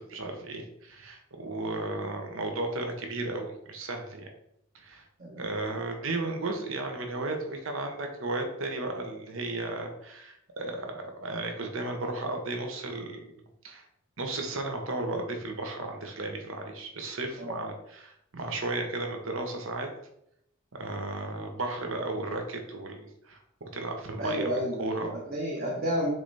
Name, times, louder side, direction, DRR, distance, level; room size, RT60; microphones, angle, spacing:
voice 1, 0.0-4.3 4.7-5.0 5.4-13.3 13.6-13.9 14.2-19.9 20.7-24.5 24.8-25.2, right 2 dB, 70° right, 4 dB, 1.0 m, -34 dB
voice 2, 24.2-26.1, equal, 45° right, -3 dB, 1.1 m, -31 dB
6.7 x 3.4 x 4.1 m, 0.78 s
head